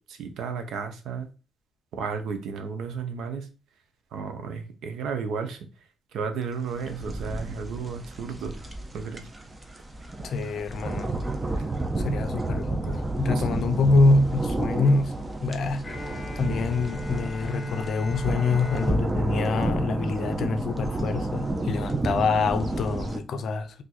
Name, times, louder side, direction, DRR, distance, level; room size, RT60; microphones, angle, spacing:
voice 1, 0.1-1.3 1.9-3.5 4.1-5.6 6.1-8.6 8.9-9.3 13.3-13.4, right 5 dB, 75° right, 0.6 m, -33 dB
sound 1, 6.7-23.2, right 2 dB, 20° right, 0.5 m, -31 dB
voice 2, 10.2-11.2 12.0-15.1 15.4-23.8, left 3 dB, 65° left, 0.4 m, -25 dB
Bowed string instrument, 15.8-20.7, left 2 dB, 15° left, 0.9 m, -40 dB
2.5 x 2.3 x 4.1 m
cardioid pair, 90°, 0 cm